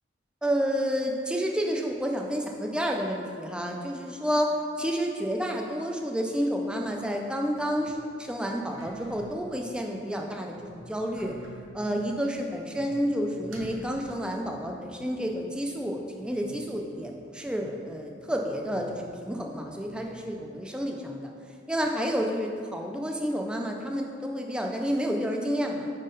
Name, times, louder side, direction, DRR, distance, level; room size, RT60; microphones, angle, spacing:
voice 1, 0.4-11.4 11.7-21.3 21.7-25.9, equal, 5° right, 1 dB, 0.4 m, -30 dB
sound 1, 6.2-20.4, right 1 dB, 80° right, 0.8 m, -49 dB
5.0 x 3.7 x 5.2 m, 2.4 s
head